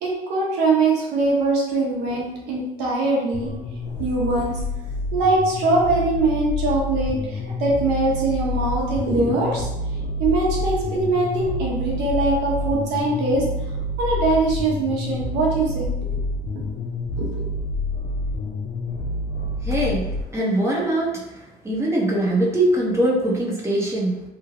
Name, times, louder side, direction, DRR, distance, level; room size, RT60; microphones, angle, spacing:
voice 1, 0.0-3.5 4.0-4.6 5.1-13.4 14.0-15.9 17.2-17.5, right 2 dB, 85° right, -3 dB, 1.1 m, -22 dB
sound 1, 3.3-20.2, left 2 dB, 60° left, 0.6 m, -28 dB
voice 2, 19.6-21.2 21.6-24.2, right 1 dB, 15° right, -3 dB, 0.9 m, -22 dB
3.1 x 2.2 x 3.7 m, 0.96 s
cardioid pair, 110°, 17 cm